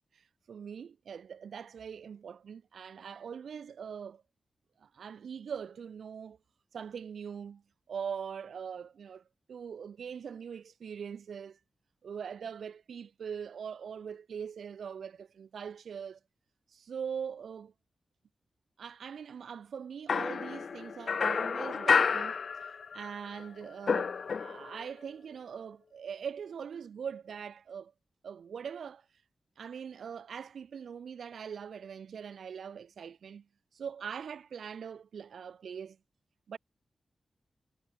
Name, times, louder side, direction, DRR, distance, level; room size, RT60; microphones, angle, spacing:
voice 1, 0.1-4.2 4.8-6.4 6.7-7.6 7.9-9.2 9.5-11.6 12.0-16.2 16.7-17.7 18.8-22.3 22.6-27.9 28.2-29.0 29.6-33.4 33.7-36.0 36.5-36.6, right 7 dB, 90° right, 1.6 m, -42 dB
sound 1, 20.1-23.1 23.4-24.9, left 5 dB, 65° left, 0.9 m, -30 dB
wide cardioid pair, 95°, 0 cm